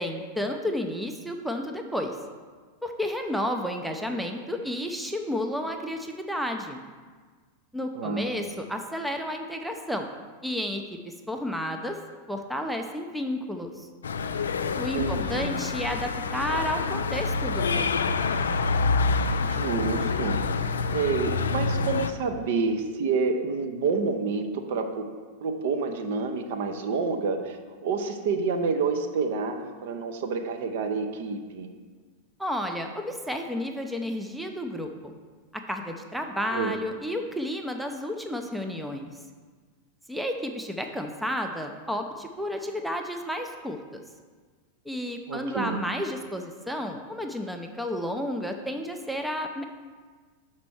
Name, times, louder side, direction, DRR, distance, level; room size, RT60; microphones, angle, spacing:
voice 1, 0.0-2.2 2.8-6.8 7.7-10.1 10.4-12.0 12.3-13.9 14.7-18.2 32.4-35.1 35.5-39.1 40.1-44.0 44.9-49.6, equal, ahead, 4 dB, 0.5 m, -32 dB
voice 2, 8.0-8.5 14.9-15.6 19.4-20.4 20.9-25.1 25.4-27.6 27.8-31.7 36.5-36.7 45.3-45.8, right 4 dB, 55° right, 5 dB, 0.7 m, -28 dB
sound 1, 14.0-22.1, left 4 dB, 70° left, 0.3 m, -27 dB
6.0 x 4.4 x 6.1 m, 1.5 s
figure-of-eight pair, 90°, 0 cm